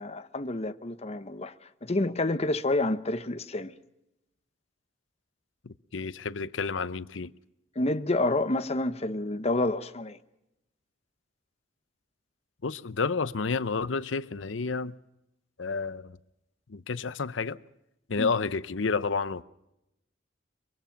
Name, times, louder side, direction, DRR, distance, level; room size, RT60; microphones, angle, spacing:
voice 1, 0.0-1.5 1.8-3.7 7.8-10.2 18.2-18.3, left 2 dB, 35° left, 0.9 m, -28 dB
voice 2, 5.6-7.3 12.6-15.0 15.6-16.2 16.7-17.6 18.1-19.4, left 4 dB, 85° left, 0.8 m, -30 dB
24.0 x 24.0 x 5.9 m
head